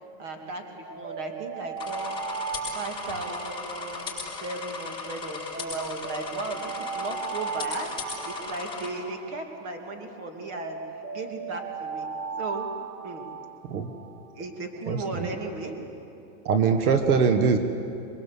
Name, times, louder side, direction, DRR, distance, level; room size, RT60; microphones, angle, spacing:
voice 1, 0.2-4.1 4.4-10.8 11.1-12.1 12.4-12.7 13.0-13.2 14.3-15.7, right 2 dB, 25° right, 4 dB, 2.5 m, -36 dB
Alarm, 0.8-5.0 5.5-10.0 10.5-14.3, right 5 dB, 75° right, 3.5 m, -37 dB
sound 1, 1.8-8.9, left 5 dB, 10° left, 5.7 m, -37 dB
voice 2, 16.5-17.6, right 5 dB, 60° right, 7 dB, 1.7 m, -21 dB
27.5 x 22.5 x 8.3 m, 2.8 s
supercardioid pair, 180°, 50 cm